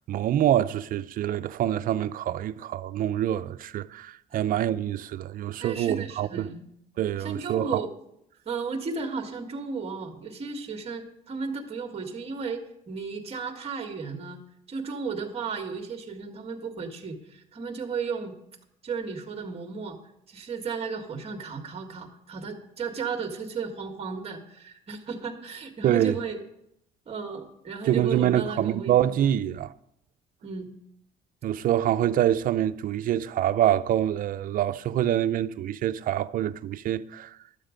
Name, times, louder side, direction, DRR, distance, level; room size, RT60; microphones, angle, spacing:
voice 1, 0.1-6.5 7.0-7.8 25.8-26.2 27.8-29.7 31.4-37.4, right 11 dB, 55° right, 0.5 m, -25 dB
voice 2, 5.6-6.7 7.2-7.9 8.5-14.4 14.7-18.3 18.8-20.0 20.3-26.4 27.1-29.0 30.4-30.7, right 5 dB, 35° right, 1.8 m, -34 dB
12.0 x 8.1 x 5.2 m
cardioid pair, 110°, 17 cm